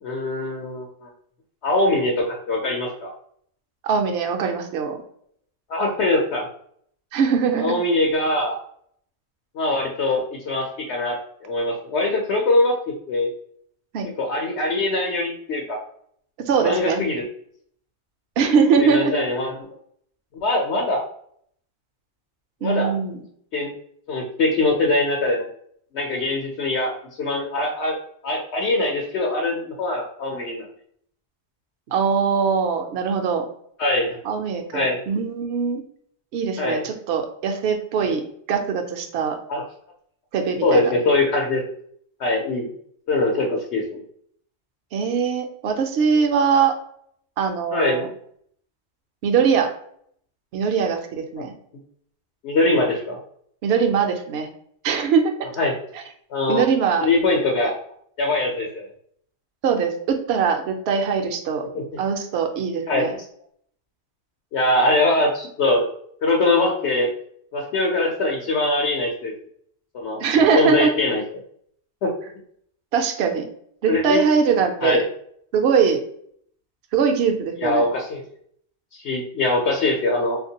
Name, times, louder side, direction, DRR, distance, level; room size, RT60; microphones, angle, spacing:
voice 1, 0.0-1.1 1.6-3.1 5.7-6.5 7.6-8.6 9.5-11.2 11.4-12.7 13.1-13.3 14.2-15.8 16.6-17.2 18.8-19.6 20.4-21.0 22.6-22.9 23.5-23.7 24.1-25.5 25.9-28.0 28.2-30.7 33.8-34.2 34.7-35.0 36.6-36.9 38.0-38.2 39.5-39.6 40.6-41.6 42.2-42.7 43.1-43.8 47.7-48.0 51.4-51.5 52.4-53.2 55.6-55.7 56.3-56.6 57.0-57.7 58.2-58.9 61.7-61.8 62.9-63.2 64.5-65.8 66.2-67.1 67.5-69.3 69.9-70.2 70.6-71.2 72.0-72.1 73.9-74.2 74.8-75.1 77.6-78.2 79.0-80.4, left 2 dB, 75° left, -1 dB, 0.9 m, -22 dB
voice 2, 3.8-5.0 7.1-7.8 13.9-14.1 16.5-17.0 18.4-19.1 22.6-23.2 31.9-33.5 34.2-35.8 36.3-39.4 40.3-40.9 44.9-46.8 47.4-48.1 49.2-49.7 50.5-51.5 53.6-54.5 54.8-55.3 55.9-56.0 56.5-57.1 59.6-61.6 62.0-63.1 70.2-70.9 72.9-73.5 73.8-75.0 75.5-76.0 76.9-77.8, right 6 dB, 70° right, 4 dB, 0.8 m, -21 dB
3.5 x 2.5 x 2.7 m, 0.64 s
omnidirectional pair, 1.1 m